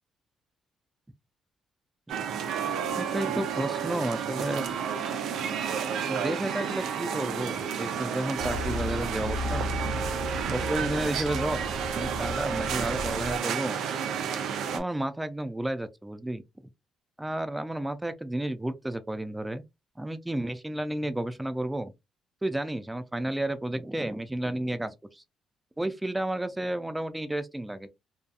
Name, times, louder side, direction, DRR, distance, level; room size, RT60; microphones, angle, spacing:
sound 1, 2.1-14.8, right 7 dB, 80° right, 0.4 m, -31 dB
voice 1, 2.9-4.8 6.1-9.7 10.5-11.6 11.9-13.8 14.7-16.4 17.2-19.7 20.0-21.9 22.4-25.2 25.8-27.9, right 1 dB, 10° right, 0.4 m, -32 dB
sound 2, 8.4-13.4, left 1 dB, 55° right, 1.1 m, -35 dB
2.7 x 2.3 x 2.2 m
cardioid pair, 90°, 0 cm